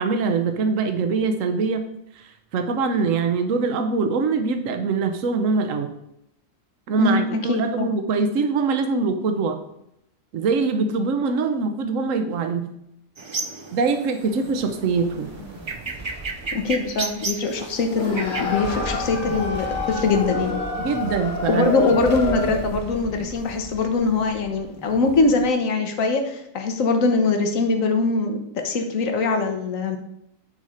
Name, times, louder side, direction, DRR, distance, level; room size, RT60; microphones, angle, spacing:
voice 1, 0.0-1.9 2.2-5.9 6.9-9.6 10.3-12.7 13.7-15.3 20.8-21.9, right 4 dB, 75° right, 7 dB, 1.2 m, -23 dB
voice 2, 7.0-7.9 16.5-20.6 21.5-28.4 28.6-30.0, left 3 dB, 75° left, 5 dB, 1.4 m, -22 dB
sound 1, 13.2-18.4, right 3 dB, 50° right, 0.3 m, -33 dB
sound 2, 14.2-25.5, right 2 dB, 10° right, 1.2 m, -38 dB
sound 3, 17.9-22.8, left 3 dB, 55° left, 1.5 m, -29 dB
10.5 x 4.3 x 5.0 m, 0.78 s
omnidirectional pair, 1.4 m